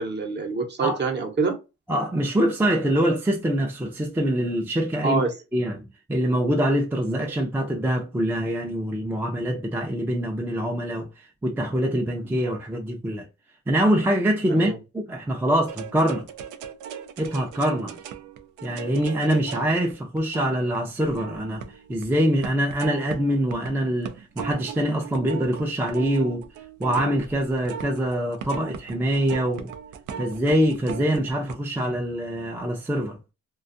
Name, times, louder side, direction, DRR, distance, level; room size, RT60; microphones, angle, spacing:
voice 1, 0.0-1.6 5.0-5.3 14.5-14.8 17.8-17.9, right 4 dB, 35° right, 0.8 m, -26 dB
voice 2, 1.9-5.2 5.5-5.8 6.1-13.3 13.7-16.3 17.2-18.0 18.6-26.4 26.8-29.7 30.2-33.2, right 1 dB, 5° right, 0.5 m, -24 dB
sound 1, 15.7-22.1 22.4-23.7 24.0-31.6, right 8 dB, 80° right, 0.5 m, -38 dB
2.4 x 2.3 x 2.6 m
cardioid pair, 90°, 30 cm